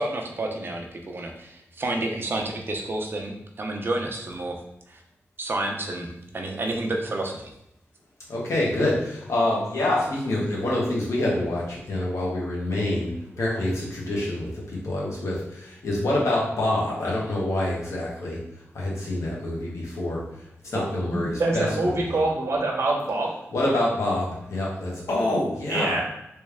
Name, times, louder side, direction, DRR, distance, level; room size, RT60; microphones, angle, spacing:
voice 1, 0.0-4.6 4.9-5.0 5.4-7.5, right 2 dB, 45° right, 2 dB, 0.6 m, -30 dB
voice 2, 8.3-18.4 18.7-20.2 20.6-22.2 23.5-26.0, left 1 dB, 85° left, -4 dB, 1.4 m, -26 dB
voice 3, 21.4-23.3 25.7-26.0, right 2 dB, 65° right, -1 dB, 1.0 m, -24 dB
3.3 x 3.2 x 3.4 m, 0.81 s
wide cardioid pair, 125°, 5 cm